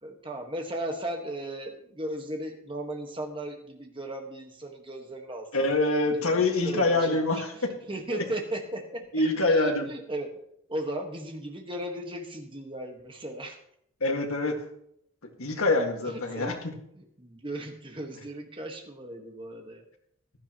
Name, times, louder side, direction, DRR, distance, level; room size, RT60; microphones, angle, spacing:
voice 1, 0.0-5.7 6.1-10.3 10.7-13.6 16.0-19.8, right 1 dB, 25° right, 3 dB, 1.4 m, -37 dB
voice 2, 5.5-7.7 8.1-8.2 9.1-9.9 14.0-14.6 15.4-16.6, left 2 dB, 90° left, 3 dB, 1.9 m, -25 dB
15.5 x 12.0 x 3.0 m, 0.73 s
head